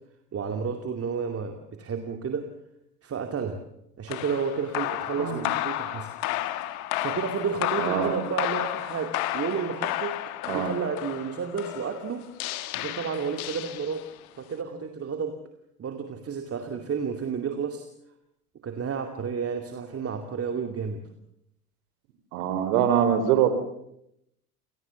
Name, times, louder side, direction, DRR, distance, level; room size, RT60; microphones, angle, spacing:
voice 1, 0.3-2.5 3.0-3.6 4.0-6.1 6.9-10.2 10.5-12.3 12.7-14.1 14.4-15.4 15.8-17.9 18.6-21.0, right 6 dB, 30° right, 6 dB, 2.5 m, -31 dB
sound 1, 4.1-14.3, left 15 dB, 65° left, 1.9 m, -32 dB
voice 2, 5.2-5.5 7.8-8.1 10.5-10.7 22.3-23.5, right 9 dB, 65° right, 10 dB, 3.9 m, -23 dB
28.5 x 19.0 x 7.1 m, 0.78 s
hypercardioid pair, 80°, 47 cm